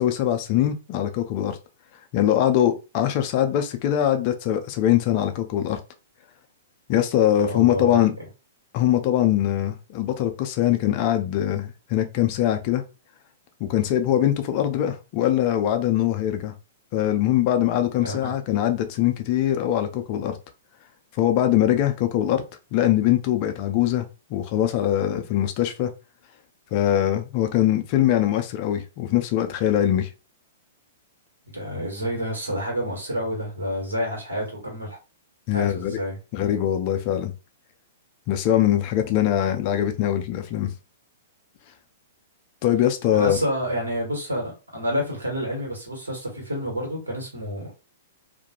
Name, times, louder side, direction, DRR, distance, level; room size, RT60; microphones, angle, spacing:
voice 1, 0.0-1.6 2.1-5.8 6.9-8.1 8.7-12.8 13.6-16.5 16.9-20.4 21.2-22.4 22.7-24.0 24.3-25.9 26.7-30.1 35.5-36.0 36.3-37.3 38.3-40.7 42.6-43.4, left 11 dB, 40° left, 0.4 m, -22 dB
voice 2, 7.3-8.0 18.0-18.3 31.5-35.0 35.5-36.2 43.1-47.7, equal, 80° right, 1.4 m, -29 dB
2.5 x 2.2 x 2.8 m
figure-of-eight pair, 110°, 0 cm